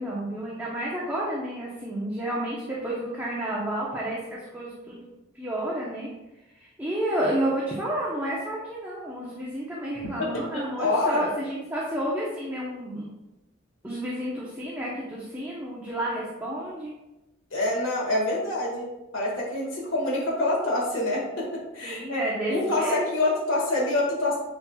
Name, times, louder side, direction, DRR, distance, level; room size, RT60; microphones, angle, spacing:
voice 1, 0.0-5.1 5.3-6.1 6.5-13.1 13.8-16.9 21.8-23.1, right 1 dB, 10° right, -6 dB, 0.9 m, -30 dB
voice 2, 10.5-11.2 17.5-18.9 19.1-22.2 22.5-24.4, left 2 dB, 70° left, -3 dB, 2.0 m, -26 dB
9.4 x 4.2 x 2.4 m, 0.98 s
head